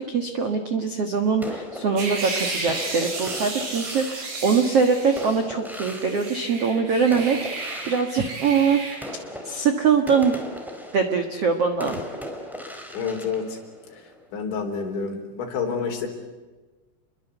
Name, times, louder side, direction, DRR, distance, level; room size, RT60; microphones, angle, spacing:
voice 1, 0.0-8.8 9.4-10.3 10.9-11.9, right 5 dB, 60° right, 6 dB, 1.5 m, -23 dB
sound 1, 1.4-6.8 7.1-14.3, left 1 dB, ahead, 3.6 m, -39 dB
sound 2, 2.0-5.4 5.7-9.0, right 3 dB, 80° right, 8.6 m, -33 dB
voice 2, 12.9-13.6 14.3-16.1, left 5 dB, 75° left, 4 dB, 6.1 m, -28 dB
29.0 x 23.0 x 8.2 m, 1.3 s
omnidirectional pair, 5.4 m